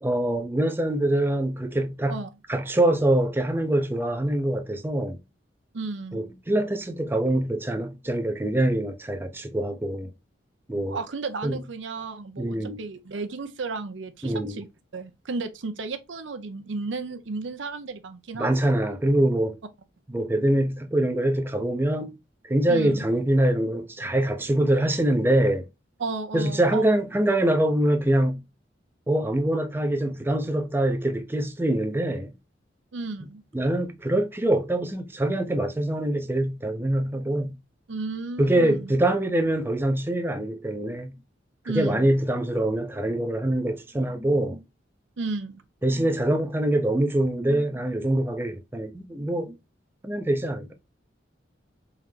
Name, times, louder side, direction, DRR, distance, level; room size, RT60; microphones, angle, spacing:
voice 1, 0.0-2.2 2.5-5.2 6.1-10.1 10.7-11.0 11.4-11.6 12.4-12.8 14.2-14.6 18.3-19.6 20.1-22.1 22.4-25.6 26.3-28.4 29.1-32.3 33.5-37.6 38.4-41.1 41.7-44.6 45.8-49.5 50.0-50.7, right 1 dB, 10° right, 0.5 m, -24 dB
voice 2, 5.7-6.2 10.9-14.7 14.9-18.5 22.7-23.0 26.0-26.9 32.9-33.4 37.9-38.9 41.7-42.1 45.2-45.6, right 3 dB, 80° right, 0.6 m, -33 dB
3.7 x 3.2 x 3.2 m
head